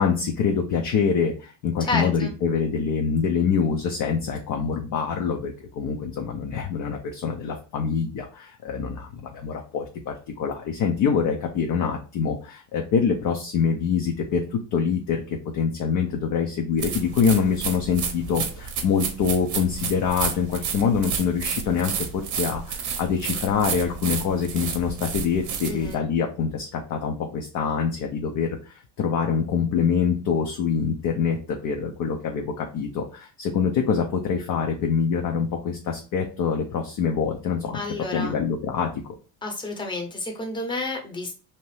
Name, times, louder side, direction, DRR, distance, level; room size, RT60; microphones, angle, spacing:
voice 1, 0.0-15.2 15.5-37.8 38.1-38.9, left 6 dB, 45° left, 2 dB, 0.6 m, -25 dB
voice 2, 1.9-2.3 25.7-26.0 37.7-38.3 39.4-41.3, left 2 dB, 10° left, 1 dB, 0.8 m, -30 dB
sound 1, 16.8-25.9, right 6 dB, 45° right, 0.8 m, -31 dB
2.8 x 2.6 x 3.2 m, 0.34 s
supercardioid pair, 105°, 44 cm